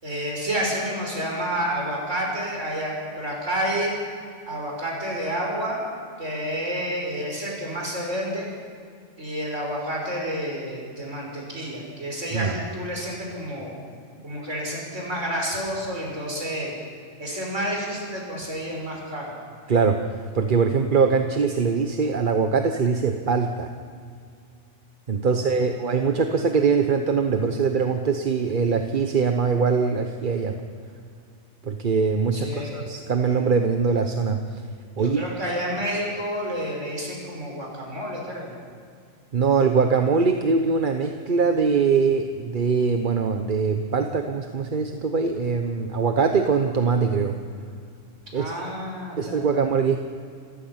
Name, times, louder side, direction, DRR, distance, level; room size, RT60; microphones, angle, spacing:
voice 1, 0.0-4.0 4.5-5.8 6.2-8.5 9.2-13.7 14.2-16.7 17.2-19.3 25.3-25.5 32.3-32.8 35.0-38.5 48.3-49.6, equal, 80° right, -2 dB, 5.8 m, -29 dB
voice 2, 19.7-20.1 20.3-23.7 25.1-30.6 31.6-34.6 35.0-35.2 39.3-47.4 48.3-48.7 49.2-50.0, right 5 dB, 45° right, 6 dB, 1.1 m, -22 dB
28.5 x 15.5 x 5.8 m, 2.3 s
omnidirectional pair, 1.2 m